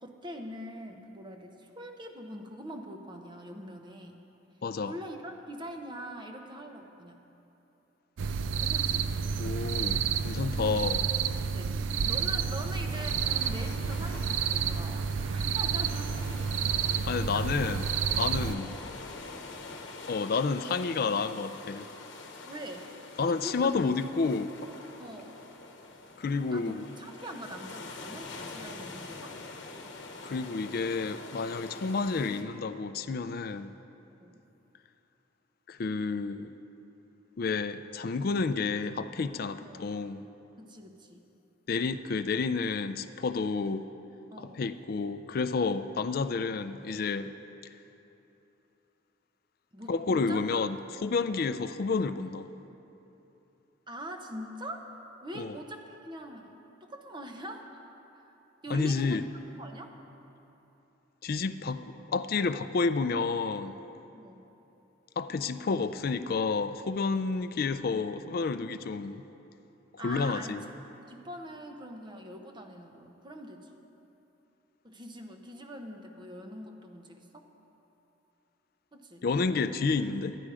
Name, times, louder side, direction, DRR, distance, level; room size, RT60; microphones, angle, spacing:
voice 1, 0.0-4.2 4.8-7.2 8.6-9.1 11.5-16.2 17.3-17.6 18.3-18.6 22.5-22.9 23.3-23.7 25.0-25.3 26.5-29.4 34.2-34.4 39.6-39.8 40.6-41.2 44.3-44.6 45.7-45.9 49.7-50.4 53.9-54.9 55.2-56.5 56.8-57.8 58.1-58.3 58.6-59.2 59.6-59.9 64.1-64.4 70.0-70.6 71.1-73.7 74.8-77.5 78.9-79.3, equal, 25° right, 3 dB, 0.8 m, -43 dB
voice 2, 4.6-4.9 9.4-11.0 17.0-18.7 20.1-21.9 23.2-24.6 26.2-26.9 30.2-33.7 35.7-36.5 37.4-40.2 41.7-43.9 44.4-47.3 49.9-52.5 55.4-55.6 58.7-59.2 61.2-63.8 65.2-69.2 69.9-70.6 79.2-80.4, left 4 dB, 50° left, 12 dB, 0.4 m, -30 dB
sound 1, 8.2-18.5, right 6 dB, 70° right, 0.4 m, -30 dB
sound 2, 12.9-32.4, left 3 dB, 65° left, 1.0 m, -45 dB
11.5 x 10.0 x 4.8 m, 3.0 s
head